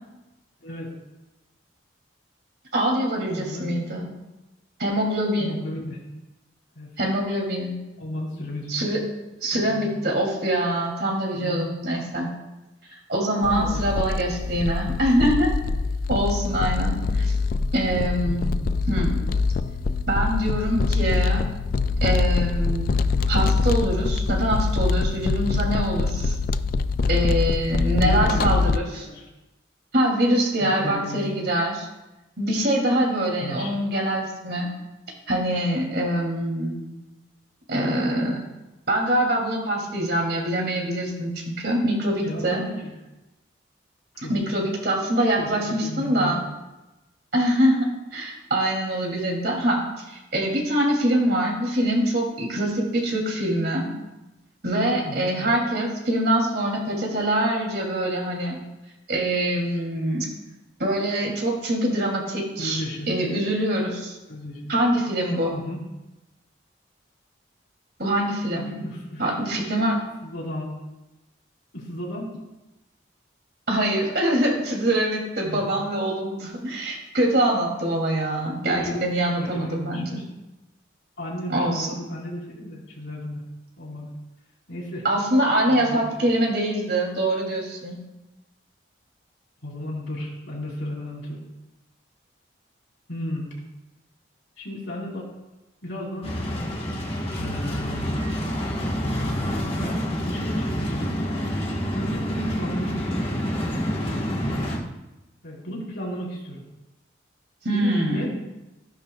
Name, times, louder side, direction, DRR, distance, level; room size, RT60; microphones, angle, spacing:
voice 1, 0.6-0.9 3.2-3.7 5.4-6.0 6.8-6.9 8.0-8.8 9.5-9.9 11.3-11.6 13.4-13.8 18.2-18.6 28.0-28.7 28.9-29.2 30.6-31.3 33.4-33.7 42.2-42.9 44.1-44.4 45.4-46.4 55.0-55.4 62.6-63.1 64.3-64.7 65.5-65.8 68.5-69.9 70.2-70.7 71.7-72.3 75.4-75.6 78.7-79.1 79.4-80.2 81.2-83.4 83.8-84.1 84.7-85.0 85.7-86.3 89.6-91.4 93.1-93.5 94.6-95.3 95.8-96.5 97.4-98.5 99.7-101.1 101.9-103.2 105.4-106.6 107.7-108.3, left 1 dB, 80° left, -4 dB, 4.2 m, -34 dB
voice 2, 2.7-4.1 4.8-5.6 7.0-7.8 8.7-9.0 9.4-12.3 13.1-15.5 16.1-17.3 17.7-18.5 18.9-19.2 20.1-21.5 22.0-22.9 23.3-26.3 27.1-29.0 29.9-31.9 32.4-34.7 35.3-36.8 37.7-38.4 38.9-41.3 41.6-42.6 44.3-46.5 47.3-53.9 54.6-58.6 59.1-60.3 60.8-64.2 64.7-65.6 68.0-68.7 69.2-70.0 73.7-80.2 81.5-81.9 85.0-87.9 107.6-108.3, right 1 dB, 55° right, -1 dB, 2.7 m, -24 dB
sound 1, 13.4-28.8, left 4 dB, 45° left, 0.3 m, -24 dB
sound 2, 96.2-104.8, equal, 30° left, 1.3 m, -27 dB
16.0 x 10.5 x 2.3 m, 1.0 s
head